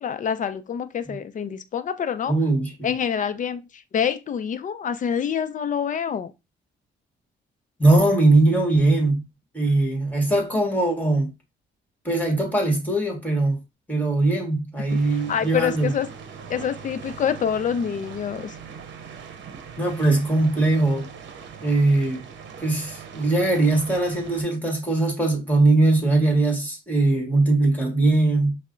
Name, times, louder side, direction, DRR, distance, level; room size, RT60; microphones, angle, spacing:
voice 1, 0.0-2.4 2.8-6.3 14.9-16.1 16.5-18.6, left 8 dB, 40° left, 0.5 m, -26 dB
voice 2, 2.3-2.9 7.8-9.2 9.5-11.3 12.0-13.6 13.9-15.9 19.8-21.1 21.6-22.2 22.6-28.6, right 2 dB, 10° left, 1.5 m, -21 dB
sound 1, 14.9-24.4, right 6 dB, 65° right, 0.8 m, -41 dB
5.3 x 2.1 x 2.4 m
cardioid pair, 90°, 20 cm